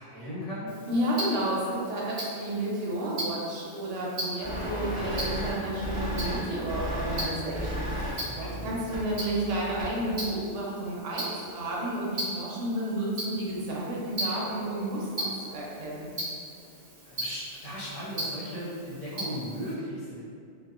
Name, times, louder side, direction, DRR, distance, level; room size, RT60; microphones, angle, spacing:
voice 1, 0.0-0.7 8.2-8.8 17.0-20.3, equal, 75° left, -9 dB, 1.2 m, -37 dB
Tick-tock, 0.7-19.7, right 1 dB, 45° right, 0.7 m, -39 dB
voice 2, 0.9-16.1, right 1 dB, 75° right, -5 dB, 0.9 m, -31 dB
sound 1, 4.4-10.1, equal, 10° right, 0.8 m, -34 dB
2.8 x 2.1 x 2.3 m, 2.4 s
omnidirectional pair, 1.3 m